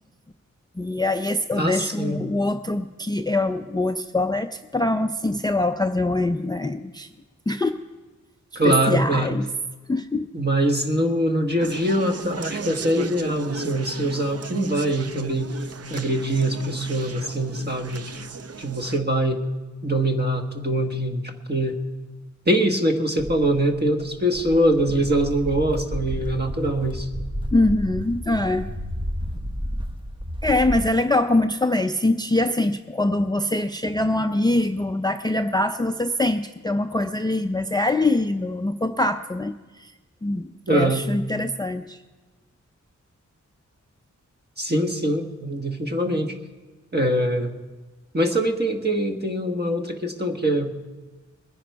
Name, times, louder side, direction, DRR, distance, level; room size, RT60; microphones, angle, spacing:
voice 1, 0.8-7.1 7.5-7.8 8.5-9.5 9.9-10.3 27.5-28.7 30.4-39.9 40.2-42.0, left 2 dB, 15° left, 9 dB, 0.4 m, -23 dB
voice 2, 1.6-2.2 8.5-9.3 10.3-15.5 15.9-18.1 18.6-19.4 19.8-21.8 22.5-27.1 40.7-41.1 44.6-46.3 46.9-47.5 48.1-50.7, right 1 dB, 35° right, 4 dB, 1.4 m, -23 dB
Conversation, 11.6-19.0, right 4 dB, 55° right, 0.6 m, -36 dB
Walk footsteps, 23.2-30.9, equal, 15° right, 0.8 m, -32 dB
21.0 x 10.0 x 4.6 m, 1.2 s
wide cardioid pair, 105°, 30 cm